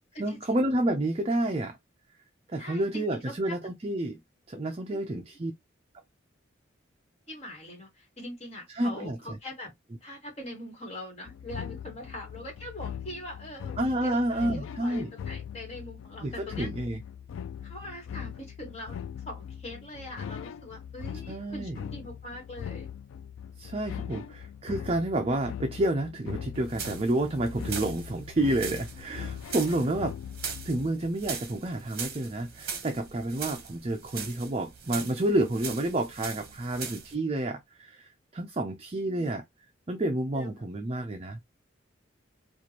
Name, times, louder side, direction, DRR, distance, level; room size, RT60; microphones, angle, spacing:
voice 1, 0.2-1.8 2.5-4.2 4.5-5.5 8.8-9.2 13.8-15.1 16.2-17.0 21.3-21.8 23.6-30.2 30.6-39.4 39.9-41.4, right 1 dB, 30° right, 0.4 m, -29 dB
voice 2, 2.6-3.6 4.9-5.2 7.3-9.7 10.0-16.7 17.6-19.0 19.2-22.9 39.0-39.4 40.3-40.7, left 1 dB, 30° left, 1.5 m, -42 dB
sound 1, 11.3-31.1, left 8 dB, 80° left, 0.3 m, -41 dB
sound 2, 26.5-37.1, right 6 dB, 50° right, 0.9 m, -40 dB
4.5 x 2.5 x 2.9 m
head